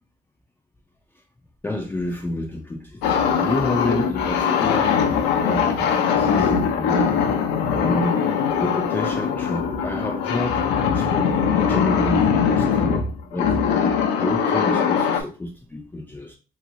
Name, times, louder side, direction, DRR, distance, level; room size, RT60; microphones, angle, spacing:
voice 1, 1.6-7.2 7.7-8.2 8.5-10.6 10.9-13.5 14.2-16.4, left 1 dB, 10° left, 0.4 m, -29 dB
sound 1, 3.0-15.2, left 7 dB, 90° left, 0.5 m, -21 dB
3.1 x 3.0 x 2.5 m
cardioid pair, 110°, 17 cm